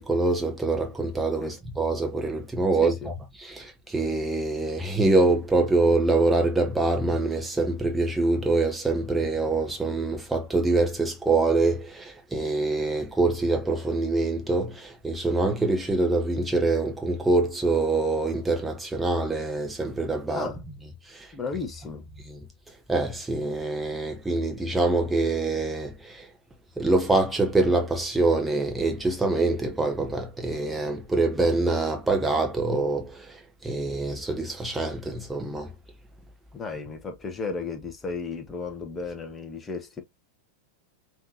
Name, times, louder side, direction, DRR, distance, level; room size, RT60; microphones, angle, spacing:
voice 1, 0.0-3.1 3.4-20.5 21.1-21.3 22.3-22.4 22.9-26.3 26.8-35.7, right 2 dB, 10° right, 1.0 m, -25 dB
voice 2, 21.3-22.0 36.5-40.0, left 4 dB, 20° left, 1.0 m, -34 dB
5.5 x 3.1 x 2.8 m
figure-of-eight pair, 90°, 0 cm